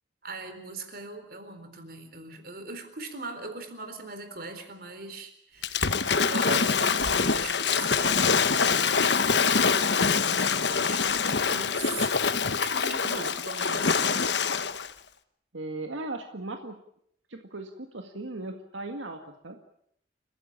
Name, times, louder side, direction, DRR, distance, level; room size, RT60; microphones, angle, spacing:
voice 1, 0.2-9.7 10.4-11.0 11.5-12.1 12.6-14.1, right 3 dB, 50° right, 8 dB, 4.1 m, -41 dB
Waves surf / Splash splatter, 5.6-14.9, left 5 dB, 60° left, 1.2 m, -25 dB
voice 2, 15.5-16.8 17.3-19.6, right 2 dB, 85° right, 5 dB, 1.9 m, -37 dB
29.5 x 15.5 x 8.9 m, 0.72 s
head